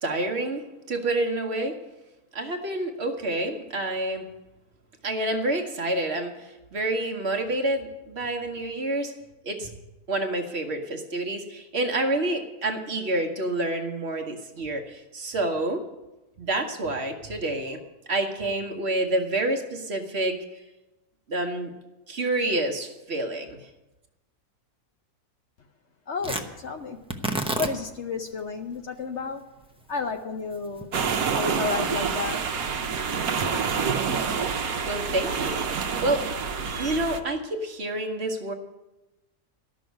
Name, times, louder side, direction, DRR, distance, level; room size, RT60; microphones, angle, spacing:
voice 1, 0.0-1.8 2.3-4.3 5.0-9.1 9.4-9.7 10.1-15.8 16.4-17.8 18.1-20.4 21.3-21.7 22.1-23.6 34.6-36.3 36.8-38.5, right 2 dB, 45° right, 3 dB, 1.2 m, -28 dB
voice 2, 26.1-27.0 27.5-29.4 29.9-30.9 31.3-32.4, left 4 dB, 55° left, 5 dB, 0.9 m, -31 dB
Tearing, 26.2-34.6, right 1 dB, 5° right, 0.6 m, -36 dB
sound 1, 30.9-37.2, right 6 dB, 70° right, 1.3 m, -27 dB
13.0 x 6.3 x 9.3 m, 1.0 s
omnidirectional pair, 1.6 m